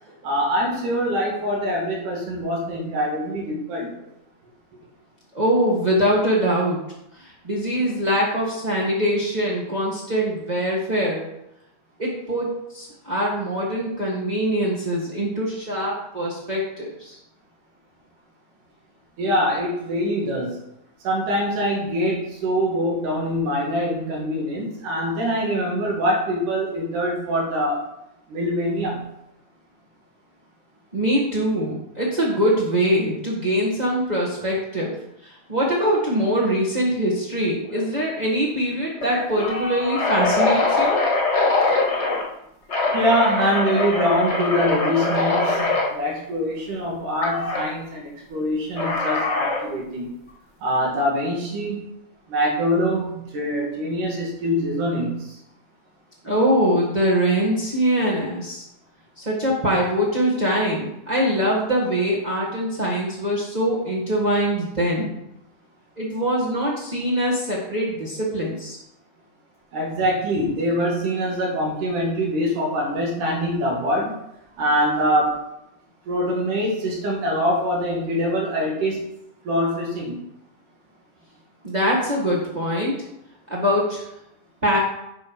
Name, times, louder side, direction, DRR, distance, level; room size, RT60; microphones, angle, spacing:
voice 1, 0.2-3.9 19.2-20.6 21.0-27.8 28.3-29.0 42.9-50.1 50.6-51.8 52.3-55.4 69.7-74.2 74.6-75.4 76.1-79.1 79.5-80.2, equal, 85° right, -2 dB, 3.7 m, -24 dB
voice 2, 5.3-6.8 7.1-11.3 12.0-17.2 30.9-34.9 35.2-41.0 56.2-58.6 59.2-65.1 66.0-68.8 81.6-82.9 83.5-84.0 84.6-84.8, equal, 40° right, -5 dB, 0.5 m, -23 dB
sound 1, 37.7-38.0 38.3-38.4 39.0-42.2 42.7-45.9 47.2-47.6 48.8-49.7, left 3 dB, 30° left, 1.2 m, -23 dB
9.6 x 4.7 x 5.5 m, 0.82 s
omnidirectional pair, 3.5 m